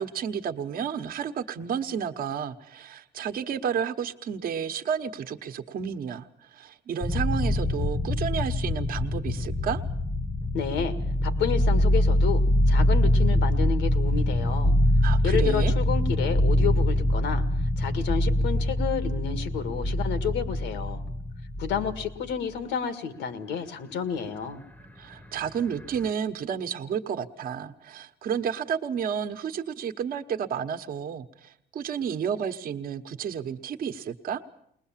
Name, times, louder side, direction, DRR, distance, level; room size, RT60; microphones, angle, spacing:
voice 1, 0.0-9.8 15.0-15.7 25.0-34.4, right 7 dB, 55° right, 7 dB, 1.1 m, -31 dB
sound 1, 7.0-22.3 25.4-26.1, left 1 dB, 10° left, 0.8 m, -24 dB
voice 2, 10.5-10.9 11.2-14.7 15.2-17.4 17.8-21.0 21.6-24.6, left 7 dB, 90° left, 10 dB, 1.9 m, -30 dB
21.0 x 20.5 x 7.4 m, 0.71 s
cardioid pair, 150°, 18 cm